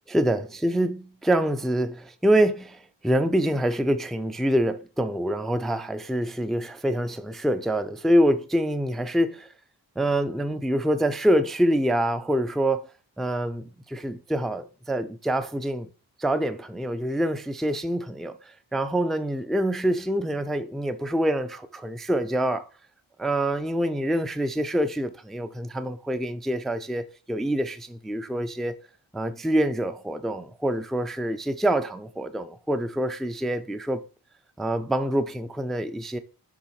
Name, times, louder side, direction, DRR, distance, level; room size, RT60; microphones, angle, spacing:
voice 1, 0.1-9.5 10.0-12.8 13.2-15.9 16.2-22.7 23.2-28.8 29.1-34.0 34.6-36.2, right 1 dB, ahead, 0.5 m, -26 dB
7.0 x 3.5 x 4.7 m
wide cardioid pair, 55°, 48 cm